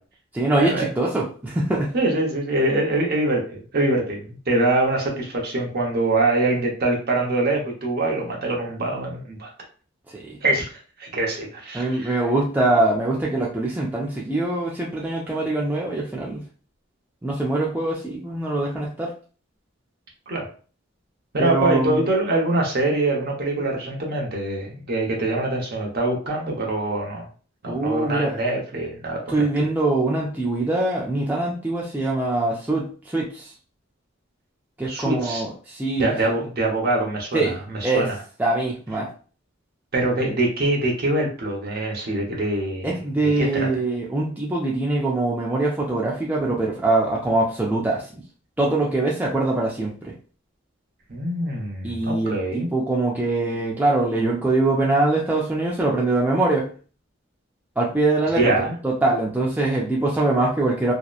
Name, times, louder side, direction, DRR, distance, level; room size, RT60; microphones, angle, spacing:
voice 1, 0.3-1.9 10.1-10.4 11.7-16.4 17.2-19.1 21.4-22.0 27.7-28.4 29.3-33.5 34.8-36.1 37.3-37.5 37.8-38.1 38.4-39.1 42.8-48.2 48.6-50.1 51.8-56.7 57.8-60.9, right 2 dB, 10° right, -4 dB, 0.3 m, -23 dB
voice 2, 1.9-3.4 3.7-9.5 10.4-12.2 20.3-20.5 21.3-27.2 27.6-29.4 34.8-35.4 36.0-38.2 39.9-42.9 43.2-43.7 51.1-52.7 58.3-58.7, right 2 dB, 50° right, -1 dB, 0.8 m, -24 dB
2.8 x 2.0 x 2.3 m, 0.39 s
head